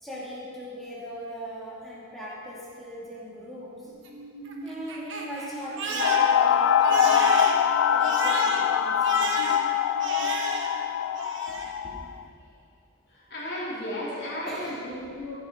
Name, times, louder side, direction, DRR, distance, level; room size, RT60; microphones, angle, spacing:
voice 1, 0.0-3.9 4.6-7.5 7.9-9.4 14.4-14.8, equal, ahead, -9 dB, 2.9 m, -39 dB
Crying sobbing, 3.9-10.9 11.2-11.8, right 3 dB, 60° right, 1.2 m, -34 dB
sound 1, 6.0-12.1, left 8 dB, 75° left, 0.3 m, -23 dB
voice 2, 10.5-11.1 12.1-12.5 13.1-15.3, left 1 dB, 55° left, -7 dB, 3.5 m, -36 dB
14.5 x 7.4 x 5.4 m, 2.3 s
head